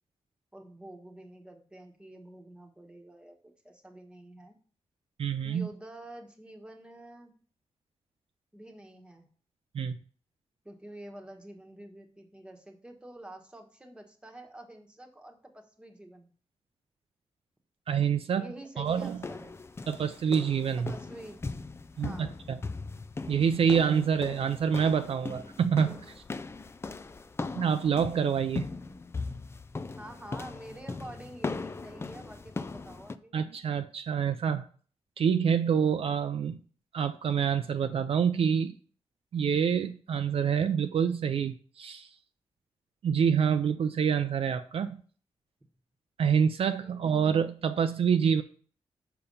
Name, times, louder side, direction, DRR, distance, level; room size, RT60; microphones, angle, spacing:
voice 1, 0.5-4.6 5.4-7.3 8.5-9.3 10.6-16.3 18.3-19.6 20.8-21.4 22.0-22.4 25.8-26.0 30.0-33.3 46.8-47.1, right 1 dB, 10° right, 4 dB, 1.2 m, -48 dB
voice 2, 5.2-5.7 9.7-10.0 17.9-18.5 18.8-19.2 19.9-20.9 22.0-22.6 23.3-26.0 27.6-28.6 33.3-34.6 35.2-36.6 36.9-38.8 39.3-42.1 43.0-45.0 46.2-48.4, right 7 dB, 60° right, 9 dB, 0.5 m, -27 dB
sound 1, 18.9-33.2, left 3 dB, 25° left, 0.4 m, -39 dB
6.8 x 5.7 x 5.4 m, 0.44 s
wide cardioid pair, 145°, 11 cm